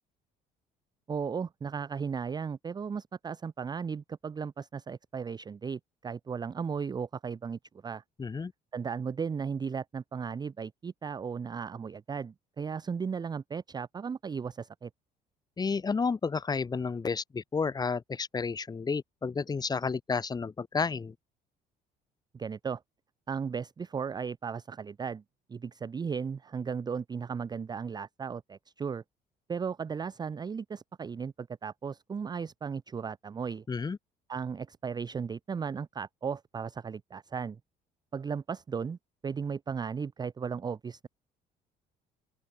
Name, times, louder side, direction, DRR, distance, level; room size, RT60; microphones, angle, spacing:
voice 1, 1.1-8.0 8.7-14.9 22.3-22.8 23.3-25.2 25.5-29.0 29.5-33.6 34.3-37.6 38.1-39.0 39.2-41.1, right 6 dB, 25° right, 0.6 m, -36 dB
voice 2, 8.2-8.5 15.6-21.1 33.7-34.0, left 5 dB, 25° left, 1.1 m, -31 dB
open air
cardioid pair, 110°, 17 cm